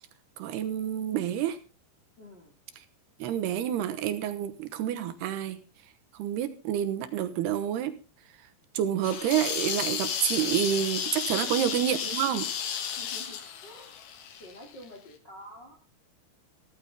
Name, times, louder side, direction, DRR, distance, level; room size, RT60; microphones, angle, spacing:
voice 1, 0.4-1.6 3.2-5.6 6.1-8.0 8.7-12.5 12.9-13.0, right 10 dB, 75° right, 2.8 m, -28 dB
voice 2, 2.2-2.5 11.3-11.6 13.0-13.9 14.4-15.7, left 1 dB, 30° left, 2.4 m, -48 dB
sound 1, 9.0-14.8, left 8 dB, 60° left, 2.8 m, -33 dB
16.0 x 13.5 x 3.6 m
omnidirectional pair, 5.3 m